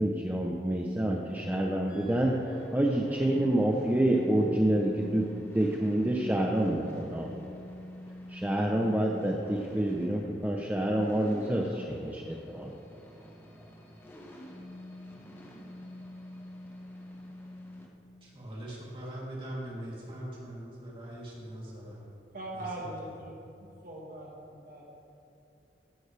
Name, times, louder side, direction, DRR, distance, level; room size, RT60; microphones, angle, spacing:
voice 1, 0.0-7.3 8.3-12.7, right 1 dB, 10° right, -1 dB, 0.7 m, -28 dB
sound 1, 1.2-17.9, left 1 dB, 15° left, 1.2 m, -47 dB
voice 2, 18.2-22.1 22.5-23.2, right 1 dB, 30° right, -5 dB, 3.0 m, -41 dB
voice 3, 22.3-23.3 23.8-24.9, right 1 dB, 50° right, -3 dB, 1.5 m, -41 dB
15.5 x 11.5 x 3.3 m, 2.7 s
head